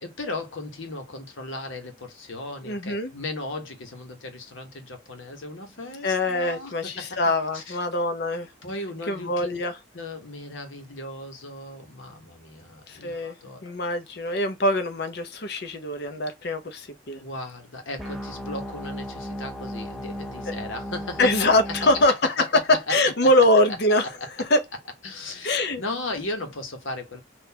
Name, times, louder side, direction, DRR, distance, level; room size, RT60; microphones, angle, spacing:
voice 1, 0.0-7.8 8.6-9.6 9.9-13.6 17.2-21.3 21.7-22.9 24.2-24.3 25.0-27.2, left 2 dB, 75° left, 1.1 m, -36 dB
voice 2, 2.6-3.1 6.0-8.5 9.1-9.7 12.9-13.3 13.6-17.2 21.2-22.5 22.9-24.1 24.5-24.6 25.4-25.8, left 1 dB, 55° left, 0.7 m, -23 dB
sound 1, 18.0-22.0, equal, ahead, 0.6 m, -35 dB
3.8 x 2.5 x 2.7 m
head